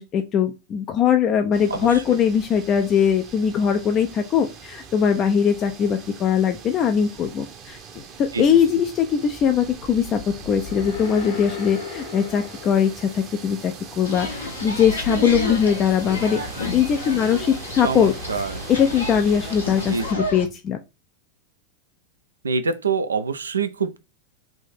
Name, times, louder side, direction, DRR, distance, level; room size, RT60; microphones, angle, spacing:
voice 1, 0.0-7.8 8.2-16.4 16.7-18.1 18.7-20.8, left 8 dB, 30° left, 0.5 m, -21 dB
sound 1, 1.5-20.1, right 6 dB, 35° right, 0.8 m, -42 dB
voice 2, 1.7-2.0 8.3-8.6 15.1-15.2 17.8-18.7 19.8-20.3 22.4-24.0, right 5 dB, 75° right, 0.4 m, -26 dB
sound 2, 9.8-14.1, left 4 dB, 55° left, 1.3 m, -37 dB
sound 3, 14.0-20.5, left 2 dB, 75° left, 1.1 m, -31 dB
3.5 x 2.7 x 4.0 m
figure-of-eight pair, 90°, 0 cm